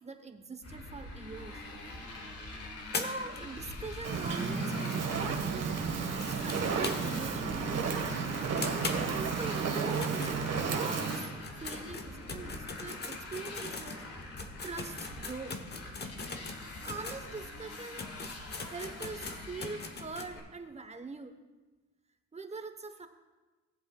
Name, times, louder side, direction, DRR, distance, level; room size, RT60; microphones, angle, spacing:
voice 1, 0.0-1.6 2.9-5.8 6.2-7.8 8.9-10.4 10.7-11.3 11.6-15.6 16.8-18.1 18.6-21.3 22.3-23.1, right 4 dB, 20° right, 7 dB, 0.9 m, -43 dB
Motorcycle, 0.6-20.4, left 2 dB, 50° left, 1.8 m, -45 dB
sound 1, 2.9-7.3 7.6-7.7 8.0-8.1 8.6-10.9 11.3-17.2 17.7-17.8 18.0-20.3, left 4 dB, 35° left, 1.0 m, -41 dB
Fire, 4.0-11.2, right 5 dB, 55° right, 1.5 m, -32 dB
17.0 x 7.8 x 2.3 m, 1.2 s
cardioid pair, 90°, 30 cm